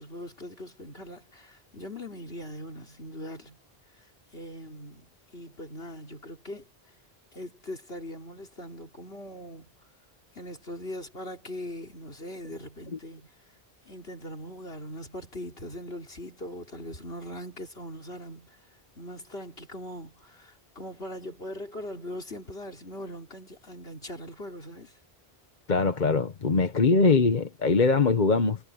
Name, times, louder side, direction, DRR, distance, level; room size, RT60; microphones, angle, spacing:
voice 1, 0.0-3.6 4.3-6.7 7.3-9.7 10.3-13.3 13.8-18.6 19.0-24.9, left 1 dB, 70° left, 4.6 m, -41 dB
voice 2, 25.7-28.6, left 4 dB, 45° left, 1.2 m, -22 dB
omnidirectional pair, 1.1 m